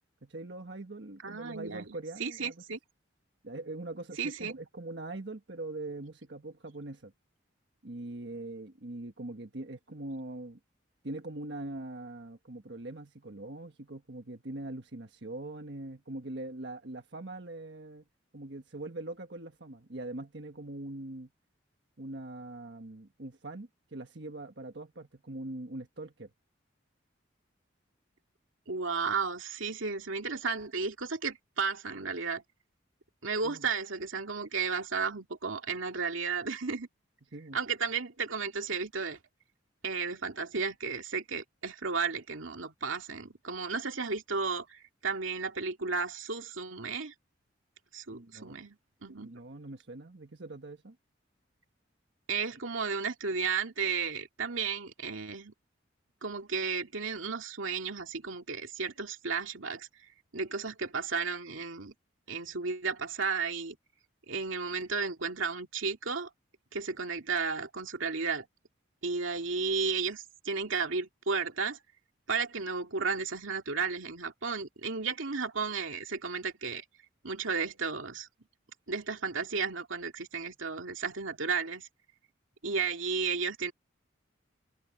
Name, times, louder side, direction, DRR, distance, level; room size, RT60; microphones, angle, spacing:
voice 1, 0.2-2.6 3.4-7.1 7.8-10.6 11.0-18.0 18.3-21.3 22.0-26.3 33.4-33.7 37.3-37.6 48.1-48.6 49.2-51.0, right 2 dB, 60° right, 1.4 m, -42 dB
voice 2, 1.2-1.8 2.2-2.8 4.2-4.6 28.7-32.4 33.2-36.9 37.5-39.2 39.8-47.1 47.9-49.3 52.3-55.5 56.2-59.9 60.3-61.9 62.3-63.8 64.3-66.3 66.7-68.5 69.0-71.8 72.3-76.8 77.2-78.3 78.9-81.9 82.6-83.7, right 5 dB, 90° right, 2.5 m, -33 dB
head